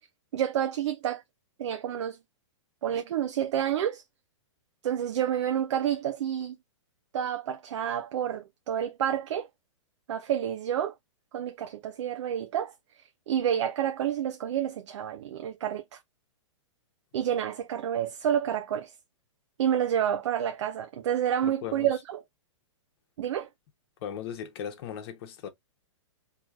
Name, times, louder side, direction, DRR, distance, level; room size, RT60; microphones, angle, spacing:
voice 1, 0.3-1.2 1.6-2.2 2.8-4.0 4.8-6.6 7.1-9.5 10.1-10.9 11.3-12.7 13.3-16.0 17.1-18.9 19.6-22.2 23.2-23.5, right 10 dB, 65° right, 0.6 m, -29 dB
voice 2, 21.4-21.9 24.0-25.5, left 9 dB, 50° left, 1.2 m, -37 dB
4.3 x 3.0 x 2.7 m
hypercardioid pair, 125°, 16 cm